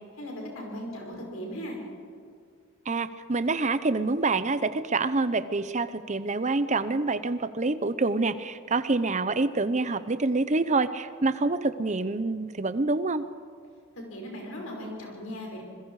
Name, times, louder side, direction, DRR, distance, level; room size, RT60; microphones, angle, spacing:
voice 1, 0.2-1.8 14.1-15.6, equal, 75° left, 0 dB, 5.7 m, -37 dB
voice 2, 2.9-13.2, right 3 dB, 35° right, 13 dB, 0.8 m, -26 dB
27.0 x 21.5 x 4.9 m, 2.2 s
head